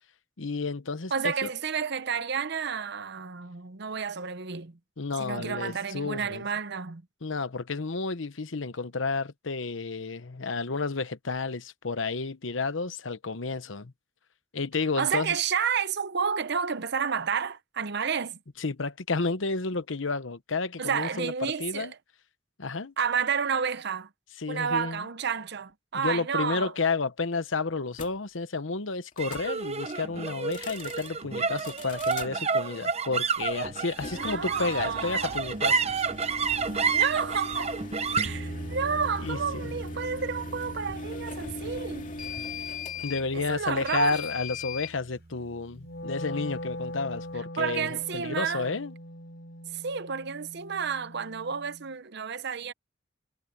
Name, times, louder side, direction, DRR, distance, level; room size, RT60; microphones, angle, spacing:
voice 1, 0.4-1.5 5.0-6.4 7.2-13.9 14.5-15.3 18.6-21.9 22.6-22.9 24.4-25.0 25.9-36.0 39.2-39.8 43.0-48.9, left 4 dB, 80° left, 1.0 m, -31 dB
voice 2, 1.1-4.8 5.2-7.0 15.0-18.4 20.8-21.9 23.0-24.1 24.5-26.7 34.1-35.3 36.9-37.8 38.1-42.1 43.3-44.2 47.6-48.7 49.7-52.7, right 6 dB, 60° right, 0.9 m, -30 dB
sound 1, 27.9-28.1 29.1-29.5 30.4-31.1 31.6-32.3 33.9-44.9, left 4 dB, 45° left, 2.3 m, -40 dB
sound 2, 29.2-45.7, right 5 dB, 35° right, 0.9 m, -32 dB
Wind instrument woodwind instrument, 45.7-51.9, left 1 dB, 60° left, 5.3 m, -41 dB
head